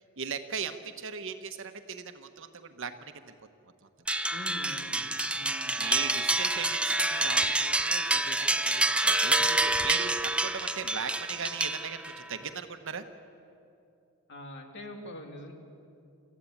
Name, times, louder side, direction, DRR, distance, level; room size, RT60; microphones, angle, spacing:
voice 1, 0.2-3.3 5.8-13.0, right 6 dB, 65° right, 8 dB, 1.2 m, -38 dB
sound 1, 4.1-12.2, right 2 dB, 5° right, 0.6 m, -28 dB
voice 2, 4.3-5.8 14.3-15.5, left 1 dB, 55° left, 3 dB, 2.7 m, -44 dB
27.5 x 14.5 x 8.7 m, 2.7 s
head